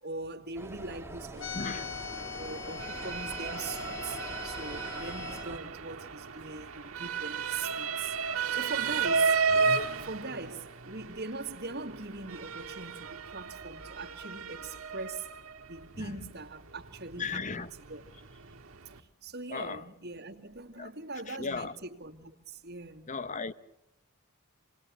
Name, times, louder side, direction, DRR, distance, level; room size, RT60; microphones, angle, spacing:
voice 1, 0.0-2.1 2.4-8.2 8.5-9.4 10.0-15.3 15.7-18.0 19.0-23.1, right 3 dB, 50° right, 2.2 m, -41 dB
sound 1, 0.5-5.6, right 1 dB, 10° right, 2.1 m, -44 dB
sound 2, 1.4-5.4, left 8 dB, 65° left, 2.0 m, -41 dB
voice 2, 1.5-1.8 15.9-16.2 17.2-17.7 19.5-19.8 20.8-20.9 21.3-21.7 23.1-23.5, left 4 dB, 35° left, 1.0 m, -36 dB
Motor vehicle (road) / Siren, 1.6-19.0, right 5 dB, 75° right, 1.8 m, -34 dB
28.0 x 20.0 x 7.5 m
head